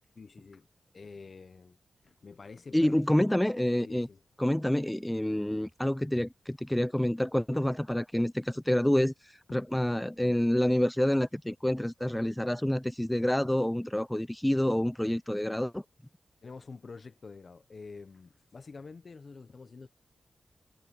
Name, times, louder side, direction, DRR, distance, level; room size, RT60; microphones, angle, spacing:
voice 1, 0.1-0.7 0.9-1.8 2.0-3.2 3.8-4.2 9.5-9.6 16.4-19.9, left 4 dB, 50° left, 1.0 m, -48 dB
voice 2, 2.7-4.1 4.4-9.1 9.5-15.8, left 1 dB, 5° left, 0.5 m, -28 dB
cardioid pair, 85°, 0 cm